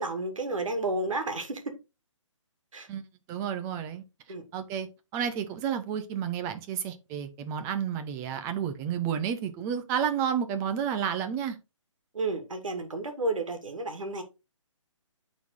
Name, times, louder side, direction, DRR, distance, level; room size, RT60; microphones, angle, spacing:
voice 1, 0.0-1.6 2.7-2.9 4.3-4.4 12.1-14.2, right 2 dB, 80° right, 2.0 m, -31 dB
voice 2, 3.3-4.0 4.5-4.9 5.1-11.6, right 8 dB, 15° right, 0.7 m, -31 dB
9.3 x 4.1 x 3.8 m
hypercardioid pair, 150°, 16 cm